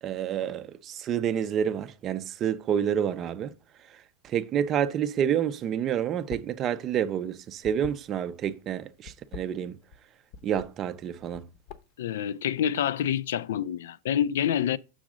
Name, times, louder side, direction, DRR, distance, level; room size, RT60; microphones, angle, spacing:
voice 1, 0.0-3.5 4.2-9.8 10.4-11.5, right 9 dB, 30° right, 0.4 m, -29 dB
sound 1, 6.2-6.6 6.9-8.5 9.0-10.0 10.3-10.7 11.2-12.0, left 5 dB, 50° left, 0.7 m, -44 dB
voice 2, 12.0-14.8, left 9 dB, 80° left, 0.4 m, -27 dB
6.2 x 3.8 x 6.1 m
supercardioid pair, 145°, 0 cm